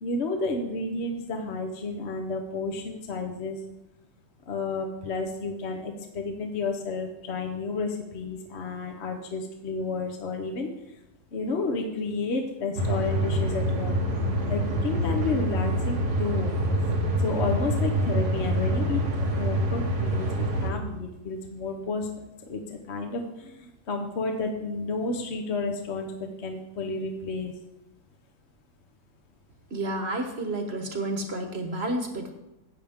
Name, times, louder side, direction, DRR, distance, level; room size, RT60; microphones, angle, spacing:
voice 1, 0.0-3.6 4.5-10.7 11.3-14.0 14.5-16.5 17.2-22.1 22.5-27.5, left 3 dB, 50° left, 3 dB, 1.1 m, -31 dB
sound 1, 12.8-20.7, equal, 80° right, 1.9 m, -26 dB
voice 2, 29.7-32.3, right 1 dB, 45° right, 5 dB, 1.3 m, -30 dB
13.5 x 8.6 x 3.6 m, 0.93 s
omnidirectional pair, 1.7 m